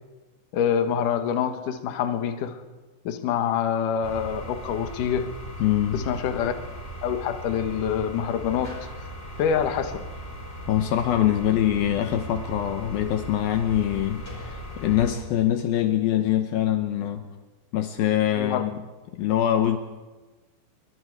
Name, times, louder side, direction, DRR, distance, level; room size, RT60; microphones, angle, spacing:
voice 1, 0.5-2.6 3.0-5.4 5.9-6.5 7.0-8.9 9.4-10.0 18.4-18.6, left 8 dB, 70° left, 7 dB, 2.1 m, -26 dB
sound 1, 4.0-15.1, equal, 10° left, 4.7 m, -38 dB
voice 2, 5.6-6.0 10.7-17.2 17.7-18.8 19.1-19.8, left 11 dB, 85° left, 7 dB, 2.1 m, -24 dB
28.5 x 23.0 x 4.8 m, 1.2 s
omnidirectional pair, 5.7 m